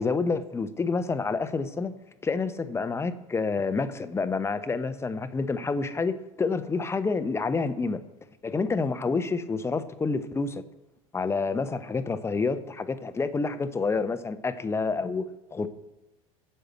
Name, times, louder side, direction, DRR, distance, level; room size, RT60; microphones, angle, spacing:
voice 1, 0.0-1.9 2.2-8.0 8.4-10.6 11.1-15.7, left 4 dB, 15° left, 11 dB, 0.9 m, -28 dB
9.9 x 7.8 x 8.0 m, 1.0 s
figure-of-eight pair, 75°, 19 cm